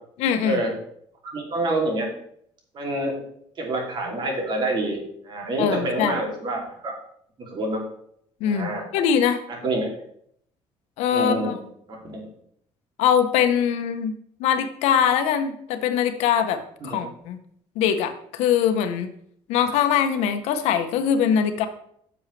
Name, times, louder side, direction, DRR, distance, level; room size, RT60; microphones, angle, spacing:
voice 1, 0.2-0.6 5.6-6.2 8.4-9.4 11.0-11.6 13.0-17.4 17.8-19.1 19.5-21.7, left 8 dB, 90° left, 9 dB, 0.9 m, -22 dB
voice 2, 1.2-2.1 2.7-3.2 3.6-5.0 5.2-6.9 7.4-7.8 8.4-8.8 9.5-9.9 11.1-11.5 12.1-12.3 16.8-17.0, right 2 dB, 45° right, 0 dB, 2.8 m, -27 dB
10.0 x 7.0 x 3.3 m, 0.68 s
cardioid pair, 130°, 11 cm